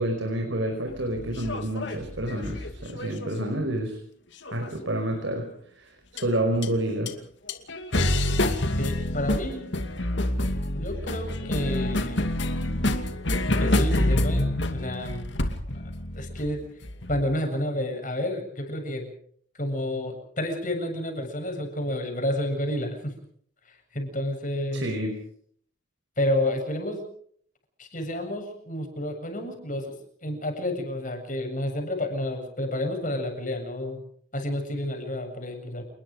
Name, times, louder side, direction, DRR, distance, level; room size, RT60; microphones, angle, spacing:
voice 1, 0.0-4.0 4.5-5.5 5.8-7.2 24.7-25.1, right 1 dB, 75° right, 4 dB, 5.1 m, -28 dB
sound 1, 1.0-3.5 4.5-5.0 6.2-6.3 6.6-6.7 7.1-7.2 7.5-17.2, left 1 dB, 65° left, 2.5 m, -27 dB
voice 2, 8.8-9.7 10.7-12.2 13.6-15.3 16.1-16.6 17.1-19.1 19.5-23.1 23.7-24.9 26.2-27.0 27.8-29.9 30.2-34.0 34.3-35.8, left 1 dB, 40° left, 4 dB, 7.6 m, -30 dB
29.0 x 21.0 x 5.2 m, 0.62 s
head